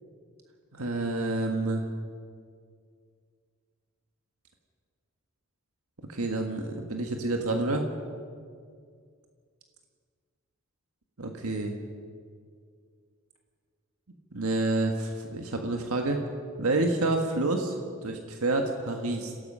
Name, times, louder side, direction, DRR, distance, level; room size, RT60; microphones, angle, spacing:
voice 1, 0.7-1.8 6.0-7.9 11.2-11.7 14.3-16.2 16.6-17.8 18.0-19.3, right 2 dB, 85° right, 3 dB, 1.7 m, -28 dB
27.0 x 17.5 x 5.7 m, 2.1 s
head